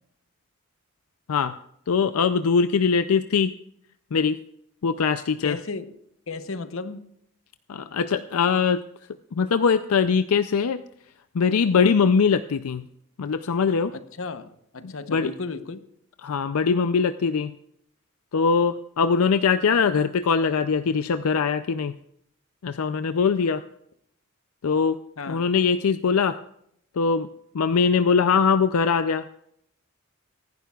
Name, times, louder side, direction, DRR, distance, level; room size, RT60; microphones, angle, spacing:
voice 1, 1.9-3.5 4.1-4.4 4.8-5.6 7.7-8.8 9.4-10.8 11.3-12.8 13.2-13.9 14.8-15.3 16.2-17.5 18.3-21.9 22.6-23.6 24.6-25.0 25.3-26.4 27.0-27.3 27.5-29.3, left 5 dB, 90° left, 11 dB, 0.5 m, -22 dB
voice 2, 5.4-6.0 6.3-7.1 13.9-15.8 25.2-25.5, left 3 dB, 70° left, 11 dB, 0.9 m, -34 dB
24.5 x 11.0 x 2.4 m, 0.73 s
head